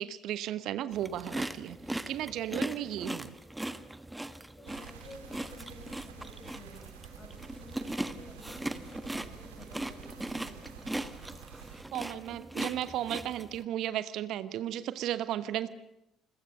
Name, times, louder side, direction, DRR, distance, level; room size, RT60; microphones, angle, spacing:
voice 1, 0.0-1.8 2.1-3.3 11.9-15.7, right 12 dB, 55° right, 14 dB, 1.1 m, -34 dB
sound 1, 0.9-13.6, right 1 dB, 10° right, 1.6 m, -39 dB
voice 2, 4.6-6.8 7.2-10.7 11.0-11.2, left 2 dB, 35° left, 3 dB, 7.9 m, -52 dB
sound 2, 4.7-11.8, right 9 dB, 75° right, 2.7 m, -50 dB
29.0 x 21.5 x 6.6 m, 0.86 s
figure-of-eight pair, 50°, 0 cm